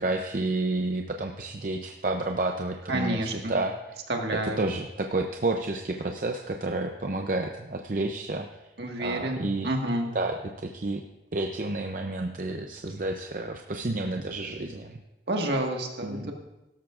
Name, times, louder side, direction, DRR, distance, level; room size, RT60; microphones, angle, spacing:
voice 1, 0.0-3.7 4.6-8.5 9.0-9.7 10.1-11.0 11.3-15.0 16.0-16.3, right 2 dB, 45° right, 3 dB, 0.6 m, -30 dB
voice 2, 2.9-3.6 4.1-4.7 8.8-10.1 15.3-16.3, right 1 dB, 70° right, 2 dB, 1.7 m, -29 dB
17.0 x 13.5 x 2.5 m, 1.0 s
head